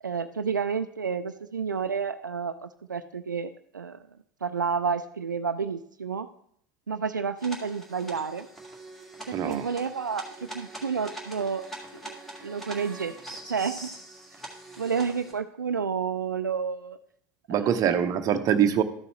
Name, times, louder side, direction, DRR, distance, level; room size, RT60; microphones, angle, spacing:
voice 1, 0.0-4.0 4.4-6.3 6.9-8.5 9.3-11.7 11.9-12.2 12.4-13.1 13.5-13.9 14.8-17.0 17.5-17.7, right 6 dB, 85° right, 10 dB, 0.4 m, -30 dB
sound 1, 7.4-15.3, right 1 dB, ahead, 2.0 m, -43 dB
voice 2, 9.3-9.7 17.5-18.8, right 9 dB, 35° right, 9 dB, 0.8 m, -24 dB
13.0 x 6.9 x 3.1 m, 0.66 s
figure-of-eight pair, 75°, 10 cm